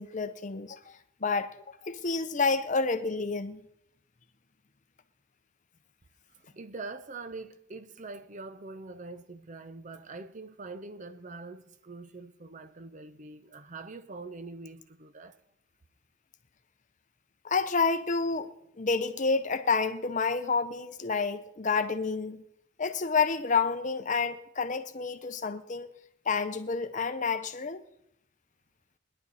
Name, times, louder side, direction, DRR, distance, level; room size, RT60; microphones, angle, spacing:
voice 1, 0.0-3.6 17.4-18.5 18.8-22.4 22.8-25.9 26.3-27.8, left 4 dB, 35° left, 0.7 m, -29 dB
voice 2, 6.4-15.4, right 3 dB, 35° right, 0.6 m, -44 dB
20.5 x 11.0 x 4.1 m
head